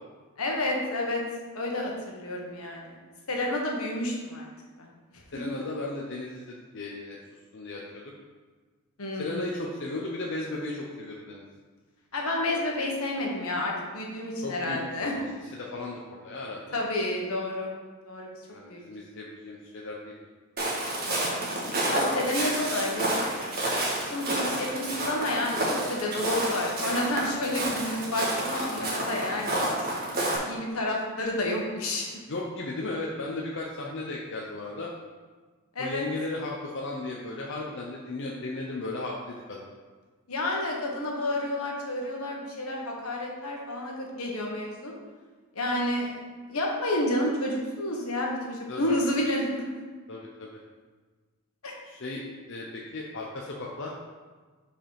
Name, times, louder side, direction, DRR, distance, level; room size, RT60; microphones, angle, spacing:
voice 1, 0.4-1.2 1.5-3.0 3.3-4.5 4.8-4.9 9.0-9.4 12.1-15.1 16.7-17.7 18.0-18.4 18.7-18.8 21.1-21.4 21.9-23.2 24.1-29.9 30.4-32.1 35.7-36.0 40.3-44.9 45.5-46.2 46.5-49.6 51.6-51.7, left 1 dB, 75° left, -1 dB, 1.4 m, -30 dB
voice 2, 5.3-7.2 7.5-8.1 9.1-11.4 14.4-16.8 18.5-20.1 32.3-34.9 35.8-39.7 48.7-48.9 50.1-50.6 51.8-52.2 52.5-53.9, left 2 dB, 55° left, -3 dB, 0.7 m, -36 dB
Walk footsteps, 20.6-30.4, right 1 dB, 40° right, 1.6 m, -29 dB
5.1 x 5.0 x 5.7 m, 1.4 s
head